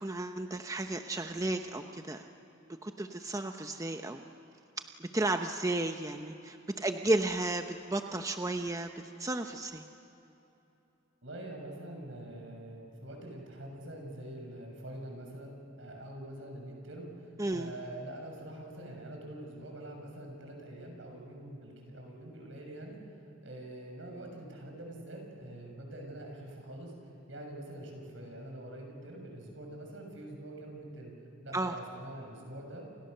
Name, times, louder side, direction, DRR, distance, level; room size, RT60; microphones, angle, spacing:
voice 1, 0.0-2.3 2.7-4.3 4.8-8.9 9.2-9.8 17.4-17.7 31.5-31.7, right 2 dB, 15° right, 6 dB, 0.9 m, -33 dB
voice 2, 11.2-23.0 23.4-26.9 27.3-31.1 31.4-32.9, right 1 dB, 75° right, 2 dB, 7.0 m, -45 dB
29.5 x 28.5 x 6.8 m, 2.9 s
head